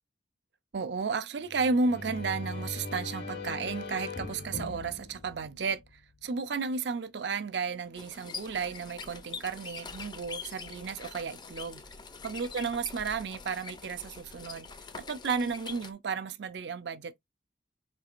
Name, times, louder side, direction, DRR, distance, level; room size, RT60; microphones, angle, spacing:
voice 1, 0.7-11.8 12.2-14.7 15.0-17.2, right 4 dB, 70° right, 0.5 m, -33 dB
sound 1, 1.5-6.2, left 3 dB, 55° left, 0.9 m, -40 dB
sound 2, 8.0-15.9, left 5 dB, 25° left, 0.4 m, -44 dB
4.6 x 3.2 x 2.4 m
head